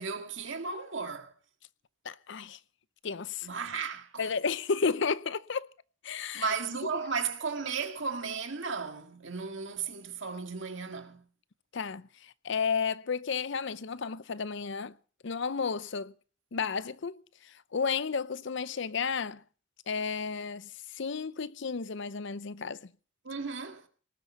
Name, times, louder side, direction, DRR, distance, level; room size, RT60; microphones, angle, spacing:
voice 1, 0.0-1.3 3.4-4.3 6.3-11.2 23.2-23.9, right 5 dB, 65° right, 2.0 m, -35 dB
voice 2, 2.0-2.6 3.0-3.5 4.2-5.7 6.0-6.5 11.7-14.9 15.2-16.1 16.5-17.2 17.7-19.4 19.9-22.9, left 5 dB, 65° left, 0.6 m, -32 dB
19.0 x 8.7 x 7.0 m
head